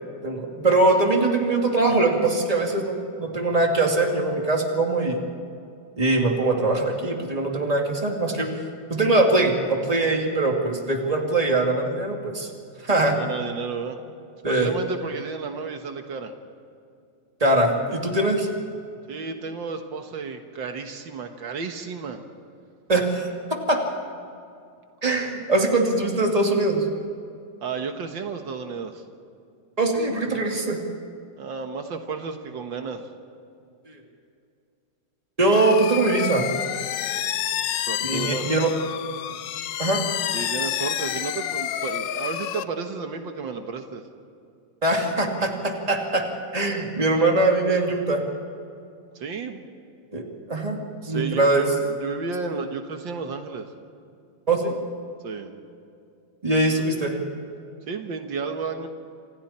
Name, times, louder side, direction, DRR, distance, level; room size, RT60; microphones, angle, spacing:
voice 1, 0.2-5.2 6.0-8.6 8.9-12.5 12.8-13.2 14.4-14.7 17.4-18.5 22.9-23.8 25.0-26.9 29.8-30.8 33.9-34.0 35.4-36.5 38.0-38.7 39.8-40.0 44.8-46.3 46.5-48.2 50.1-51.7 54.5-54.8 56.4-57.1, right 2 dB, 20° right, 1 dB, 2.5 m, -22 dB
voice 2, 13.1-14.0 14.5-16.3 19.1-22.2 27.6-29.0 31.4-33.1 37.8-38.6 40.3-44.0 49.2-49.7 51.0-53.7 55.2-55.5 57.9-58.9, right 5 dB, 80° right, 5 dB, 2.0 m, -32 dB
sound 1, 35.5-42.6, left 11 dB, 75° left, 1.4 m, -29 dB
28.5 x 26.5 x 4.4 m, 2.5 s
omnidirectional pair, 2.0 m